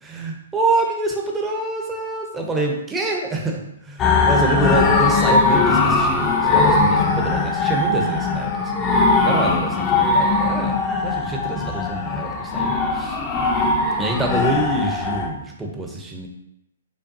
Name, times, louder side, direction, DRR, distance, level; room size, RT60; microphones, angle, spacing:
voice 1, 0.0-8.8 9.2-10.8 11.0-13.2 14.0-16.3, right 2 dB, 10° right, 0 dB, 0.7 m, -26 dB
sound 1, 4.0-15.3, left 3 dB, 20° left, 0.6 m, -20 dB
5.2 x 2.3 x 2.7 m, 0.82 s
hypercardioid pair, 130°, 0 cm